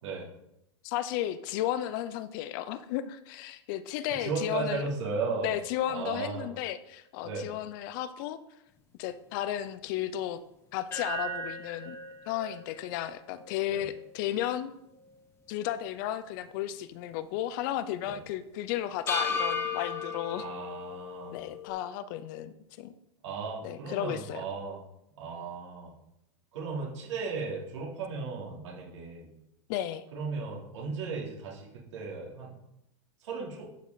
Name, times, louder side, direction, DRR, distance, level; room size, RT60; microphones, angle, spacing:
voice 1, 0.8-4.9 5.4-8.4 9.0-10.4 10.7-12.0 12.3-14.7 15.5-20.4 21.3-22.9 23.6-24.4 29.7-30.0, left 12 dB, 45° left, 14 dB, 0.6 m, -34 dB
voice 2, 4.2-5.5 5.9-6.5 7.2-7.5 13.7-13.9 18.0-18.1 20.3-21.4 23.2-24.8 25.2-26.0 26.5-29.3 30.1-32.5 33.2-33.7, right 4 dB, 85° right, -4 dB, 3.4 m, -36 dB
sound 1, 10.9-15.2 15.6-15.7 19.1-21.7, left 3 dB, 15° left, 1.4 m, -36 dB
11.5 x 5.3 x 4.1 m, 0.84 s
supercardioid pair, 150°, 15 cm